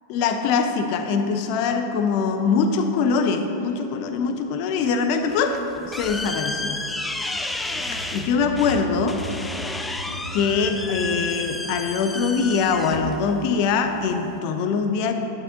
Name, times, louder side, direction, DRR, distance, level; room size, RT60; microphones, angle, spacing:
voice 1, 0.1-6.8 7.9-9.2 10.3-15.1, left 5 dB, 45° left, 7 dB, 0.8 m, -23 dB
sound 1, 3.6-3.8 4.6-4.7 6.9-11.2, equal, 75° left, 1.1 m, -37 dB
sound 2, 5.3-14.4, left 2 dB, 10° left, 0.5 m, -32 dB
12.0 x 12.0 x 2.7 m, 3.0 s
figure-of-eight pair, 90°, 0 cm